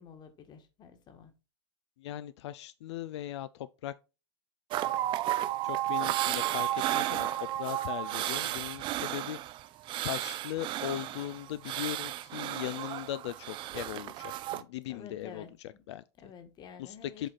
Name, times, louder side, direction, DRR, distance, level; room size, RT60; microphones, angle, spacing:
voice 1, 0.0-1.3 14.9-15.8 16.2-17.3, left 6 dB, 30° left, 1.5 m, -50 dB
voice 2, 2.0-3.9 5.6-7.3 7.6-9.4 10.0-15.5 15.9-16.0 16.8-17.3, left 13 dB, 75° left, 0.4 m, -38 dB
sound 1, 4.7-14.6, right 14 dB, 35° right, 0.5 m, -33 dB
7.9 x 4.2 x 4.1 m
supercardioid pair, 130°, 15 cm